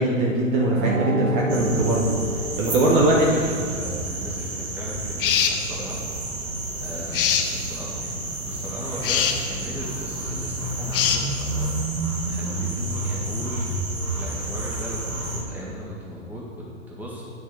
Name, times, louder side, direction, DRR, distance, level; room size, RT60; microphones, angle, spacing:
voice 1, 0.0-2.1 2.6-3.4, right 1 dB, 35° right, -2 dB, 1.2 m, -21 dB
sound 1, 0.7-3.4, right 1 dB, 65° right, 1.5 m, -29 dB
sound 2, 1.5-15.4, right 2 dB, 85° right, 1.6 m, -30 dB
voice 2, 2.8-6.0 6.8-8.1 8.4-11.7 12.3-13.7 14.2-17.2, equal, 5° right, -5 dB, 1.8 m, -36 dB
sound 3, 5.2-5.6 7.1-7.5 9.0-9.4 10.9-11.2, left 8 dB, 40° left, 0.8 m, -21 dB
9.0 x 6.7 x 4.9 m, 2.2 s
figure-of-eight pair, 120°, 41 cm